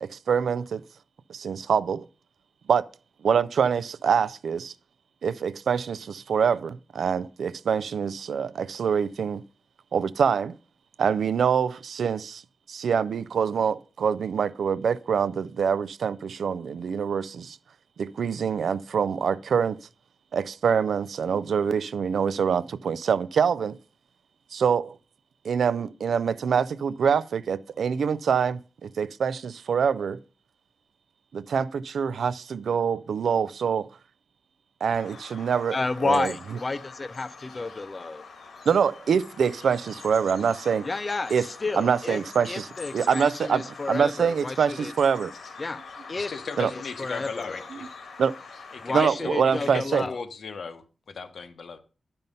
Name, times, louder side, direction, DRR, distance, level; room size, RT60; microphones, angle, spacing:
voice 1, 0.0-0.8 1.3-2.1 2.7-2.9 3.2-4.7 5.2-9.4 9.9-10.6 11.0-12.4 12.7-17.6 18.0-19.8 20.3-23.8 24.5-25.0 25.4-30.2 31.3-33.9 34.8-35.8 36.0-36.3 38.7-40.9 41.3-41.5 41.7-45.3 46.6-46.7 48.2-48.3 48.9-50.0, right 7 dB, 80° right, 0.4 m, -25 dB
Bird vocalization bird call bird song, 34.9-49.0, left 4 dB, 80° left, 2.0 m, -44 dB
voice 2, 35.7-38.2 40.8-42.2 42.4-44.9 45.6-45.8 46.1-46.3 46.6-47.6 48.8-50.2, left 3 dB, 25° left, 0.4 m, -31 dB
voice 3, 46.2-47.8 48.7-51.8, left 5 dB, 65° left, 1.0 m, -37 dB
10.5 x 5.5 x 5.3 m
wide cardioid pair, 170°, 0 cm